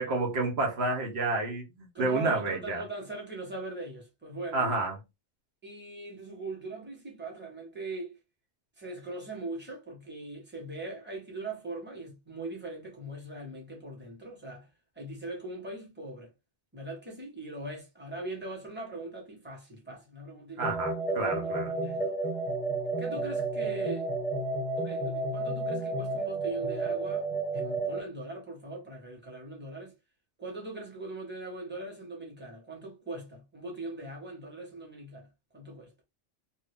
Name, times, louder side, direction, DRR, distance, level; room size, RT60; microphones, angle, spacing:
voice 1, 0.0-2.8 4.5-4.9 20.6-21.7, right 2 dB, 70° right, 1.1 m, -30 dB
voice 2, 1.9-4.8 5.6-8.2 8.8-14.7 14.9-16.3 16.7-20.8 21.0-22.2 23.0-24.1 24.8-30.0 30.4-35.3 35.5-35.9, right 2 dB, 10° right, 1.1 m, -40 dB
sound 1, 20.6-28.0, right 2 dB, 35° left, 0.8 m, -31 dB
2.7 x 2.6 x 3.3 m
omnidirectional pair, 1.2 m